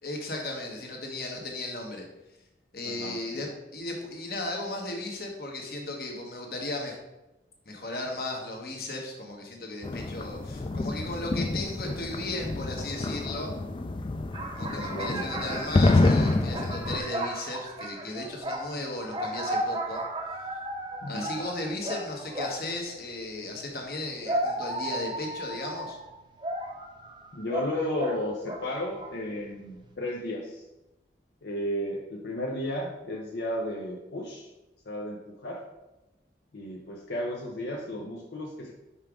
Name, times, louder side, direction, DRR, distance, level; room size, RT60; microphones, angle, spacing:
voice 1, 0.0-2.0 2.7-7.0 7.7-13.5 14.5-20.0 21.1-26.0, left 2 dB, 55° left, 1 dB, 1.2 m, -36 dB
voice 2, 2.8-3.5 14.3-15.5 21.0-21.3 27.3-30.6 31.4-34.5 34.9-35.6 36.5-38.7, left 1 dB, 75° left, -2 dB, 0.7 m, -34 dB
sound 1, 9.8-17.0, left 2 dB, 30° left, 0.3 m, -27 dB
sound 2, 14.3-22.8 23.8-28.7 29.0-29.3, right 1 dB, 25° right, 0.6 m, -35 dB
5.5 x 4.7 x 3.7 m, 0.99 s
head